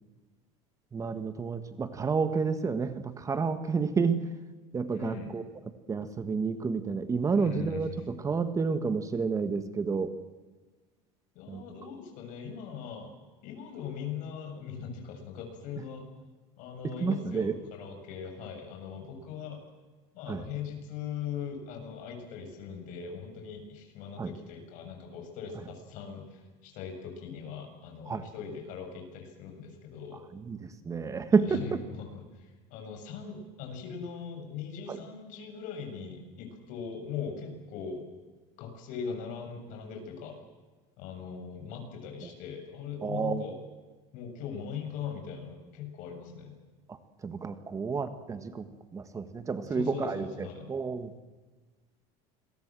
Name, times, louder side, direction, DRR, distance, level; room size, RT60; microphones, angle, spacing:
voice 1, 0.9-4.2 4.7-5.4 5.9-10.2 11.5-11.6 16.8-17.6 20.3-20.5 24.2-24.3 28.1-28.2 30.3-31.8 34.9-35.0 43.0-43.4 46.9-48.7 48.9-51.1, right 5 dB, 20° right, 10 dB, 1.5 m, -30 dB
voice 2, 4.9-5.3 7.3-7.8 11.3-13.1 13.4-16.0 16.6-19.6 20.1-30.3 31.5-38.0 38.6-40.4 41.0-43.6 44.1-46.6 49.7-50.7, left 6 dB, 60° left, 4 dB, 7.4 m, -40 dB
27.5 x 22.5 x 7.6 m, 1.3 s
cardioid pair, 135°, 15 cm